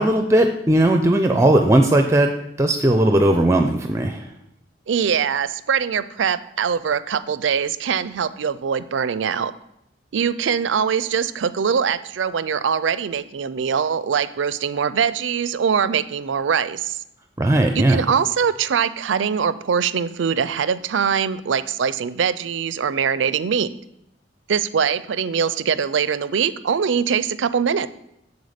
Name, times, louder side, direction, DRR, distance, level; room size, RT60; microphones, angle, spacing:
voice 1, 0.0-2.3 2.6-4.3 17.4-18.0, right 1 dB, 15° right, 5 dB, 0.5 m, -17 dB
voice 2, 4.9-9.5 10.1-17.0 17.8-23.7 24.5-27.9, right 7 dB, 85° right, 15 dB, 0.4 m, -22 dB
8.0 x 6.9 x 5.1 m, 0.80 s
head